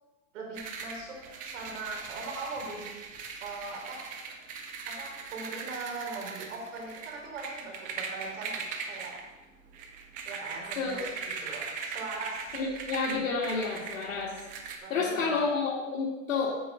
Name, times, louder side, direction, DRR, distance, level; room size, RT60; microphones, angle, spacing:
voice 1, 0.3-4.0 4.9-9.2 10.2-12.5 14.8-15.4, right 3 dB, 60° right, 0 dB, 3.6 m, -40 dB
sound 1, 0.5-14.8, right 5 dB, 20° right, 0.7 m, -40 dB
voice 2, 12.5-14.3 14.9-16.5, left 4 dB, 75° left, -6 dB, 2.2 m, -30 dB
8.6 x 7.7 x 5.0 m, 1.1 s
hypercardioid pair, 155°, 41 cm